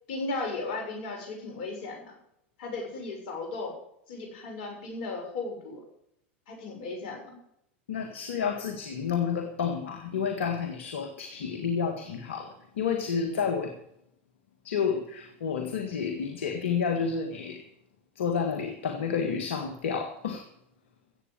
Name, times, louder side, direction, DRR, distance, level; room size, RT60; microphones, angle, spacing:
voice 1, 0.1-2.1 2.6-3.7 4.1-5.8 6.5-7.3, left 3 dB, 65° left, 2 dB, 6.7 m, -35 dB
voice 2, 7.9-13.8 14.6-17.7 18.2-20.5, left 6 dB, 80° left, 5 dB, 1.8 m, -30 dB
15.0 x 8.6 x 6.8 m, 0.73 s
hypercardioid pair, 95°, 6 cm